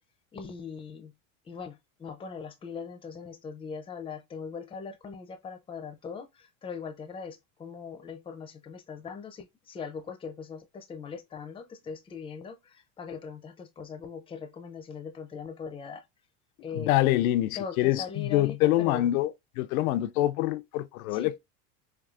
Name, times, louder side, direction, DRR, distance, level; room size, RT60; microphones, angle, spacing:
voice 1, 0.3-1.1 1.4-16.0 16.6-17.1 17.6-19.1 21.1-21.3, left 6 dB, 15° left, 0.5 m, -40 dB
voice 2, 16.7-19.3 19.6-21.4, left 15 dB, 90° left, 0.5 m, -25 dB
4.5 x 2.3 x 2.4 m
supercardioid pair, 120°, 41 cm